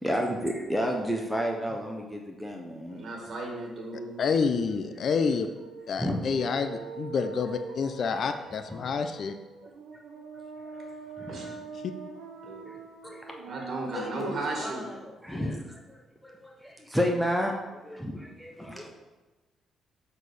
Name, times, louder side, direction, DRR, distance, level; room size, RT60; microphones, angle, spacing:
voice 1, 0.0-3.0 6.0-6.3 8.7-9.0 10.6-10.9 11.2-11.5 12.7-12.8 13.0-13.7 15.2-15.6 15.9-17.5 17.8-18.8, equal, ahead, 1 dB, 0.9 m, -31 dB
voice 2, 2.9-4.2 11.2-11.5 12.4-12.8 13.4-14.9, right 2 dB, 55° right, 0 dB, 2.0 m, -36 dB
voice 3, 4.2-5.5 5.9-9.3, left 5 dB, 55° left, 8 dB, 0.6 m, -28 dB
sound 1, 5.6-14.9, right 5 dB, 85° right, 1.3 m, -44 dB
voice 4, 13.9-15.6 18.6-18.9, left 2 dB, 20° left, 2 dB, 1.5 m, -39 dB
7.3 x 4.1 x 6.7 m, 1.2 s
cardioid pair, 90°, 0 cm